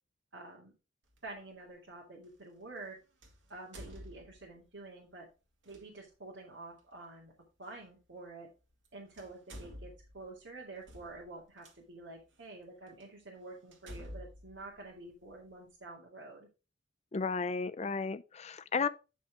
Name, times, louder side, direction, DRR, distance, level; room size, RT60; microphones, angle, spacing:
voice 1, 0.3-0.7 1.2-3.0 3.5-5.3 5.6-7.3 7.6-8.5 8.9-16.5, right 2 dB, 70° right, 2.4 m, -48 dB
sound 1, 1.1-1.3 3.2-4.7 5.6-5.8 7.7-7.8 8.7-8.9 9.1-11.7 12.4-12.5 13.0-13.1 13.7-15.5, equal, 90° right, 2.0 m, -50 dB
voice 2, 17.1-18.9, left 5 dB, 35° left, 0.5 m, -33 dB
9.4 x 5.6 x 3.6 m
head